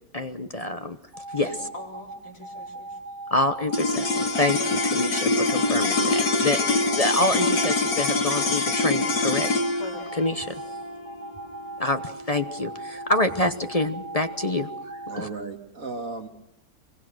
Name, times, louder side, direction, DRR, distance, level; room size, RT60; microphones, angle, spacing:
voice 1, 0.1-1.0 1.3-1.5 3.3-4.1 4.3-9.5 10.2-10.6 11.8-14.7 15.2-15.3, left 1 dB, 30° left, 8 dB, 0.9 m, -26 dB
sound 1, 1.1-15.1, right 2 dB, 30° right, 6.8 m, -38 dB
voice 2, 1.4-3.0 9.8-10.2, left 2 dB, 65° left, -3 dB, 4.6 m, -42 dB
sound 2, 3.1-3.2 4.3-6.4 7.3-7.8 8.9-9.0 9.6-11.0 11.3-11.5 12.3-12.4 12.7-13.8 14.0-14.3 14.8-15.4, equal, 10° right, 6.6 m, -50 dB
sound 3, 3.7-14.2, left 2 dB, 85° left, 2.1 m, -25 dB
voice 3, 15.1-16.3, right 3 dB, 65° right, 4 dB, 2.7 m, -35 dB
25.0 x 21.5 x 6.3 m, 0.82 s
omnidirectional pair, 1.5 m